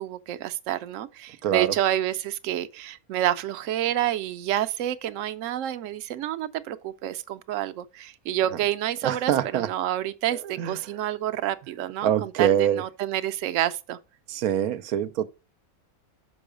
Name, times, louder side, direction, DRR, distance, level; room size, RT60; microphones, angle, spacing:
voice 1, 0.0-14.0, right 12 dB, 70° right, 0.9 m, -28 dB
voice 2, 1.4-1.7 9.0-9.7 10.4-10.8 12.0-12.8 14.3-15.2, right 10 dB, 90° right, 1.1 m, -24 dB
6.1 x 5.6 x 5.0 m
omnidirectional pair, 1.5 m